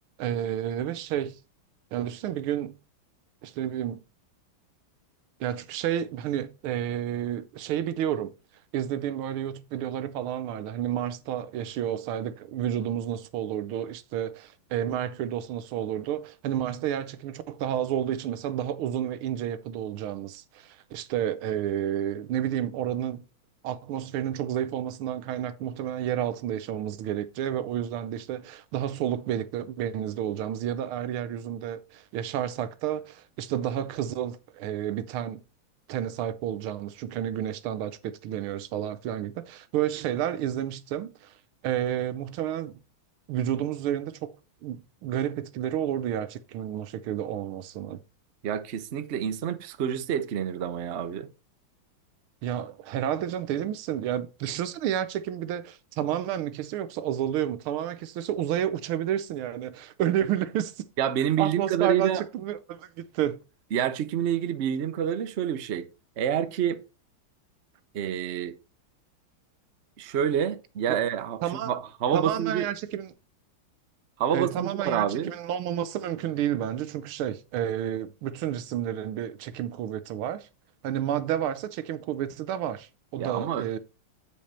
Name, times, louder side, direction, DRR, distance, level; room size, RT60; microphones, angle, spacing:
voice 1, 0.2-1.4 1.9-2.8 3.4-4.0 5.4-8.3 8.7-23.2 23.6-35.4 35.9-41.3 41.6-42.8 43.3-44.3 44.6-48.0 52.4-60.8 61.4-63.4 70.9-71.0 71.4-71.7 72.1-73.1 74.3-80.5 80.8-83.8, right 10 dB, 85° right, 1.6 m, -30 dB
voice 2, 48.4-51.3 61.0-62.2 63.7-65.9 66.2-66.8 67.9-68.5 70.0-72.7 74.2-75.3 83.2-83.7, right 9 dB, 65° right, 0.6 m, -28 dB
8.6 x 5.3 x 4.3 m
omnidirectional pair, 2.3 m